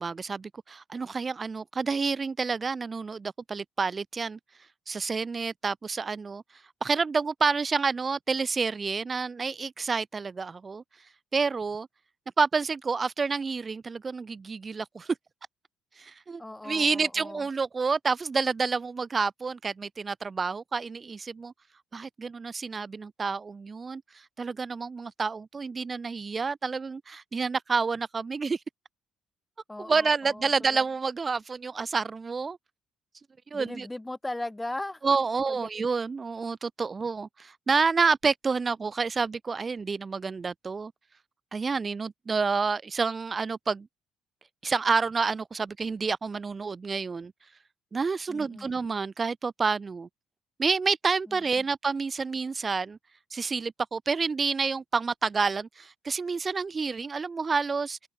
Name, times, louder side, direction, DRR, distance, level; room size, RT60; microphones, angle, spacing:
voice 1, 0.0-4.4 4.9-6.4 6.8-10.8 11.3-11.9 12.4-15.1 16.0-21.5 21.9-28.6 29.8-32.6 33.5-33.9 35.0-40.9 41.5-43.9 44.6-47.3 47.9-50.1 50.6-53.0 53.3-58.0, right 4 dB, 35° right, 0.7 m, -29 dB
voice 2, 16.4-17.5 29.7-30.8 33.5-35.0 35.5-35.7 48.3-48.8 51.3-51.7, left 1 dB, 10° left, 1.3 m, -38 dB
supercardioid pair, 75°, 0 cm